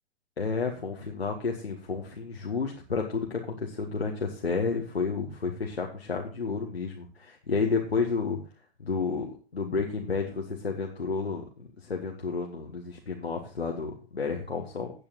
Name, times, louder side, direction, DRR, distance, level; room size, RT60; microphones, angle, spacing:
voice 1, 0.4-8.4 8.8-14.9, left 4 dB, 75° left, 1 dB, 1.7 m, -31 dB
16.5 x 8.8 x 2.6 m, 0.36 s
figure-of-eight pair, 110°, 31 cm